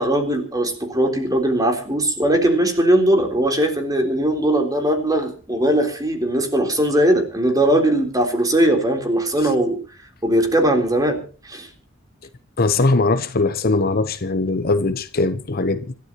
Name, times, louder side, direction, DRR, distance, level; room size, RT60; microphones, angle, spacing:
voice 1, 0.0-9.8 10.2-11.7, right 1 dB, 20° right, 3.7 m, -19 dB
voice 2, 12.6-15.9, left 3 dB, 45° left, 0.9 m, -20 dB
26.0 x 13.0 x 3.0 m
head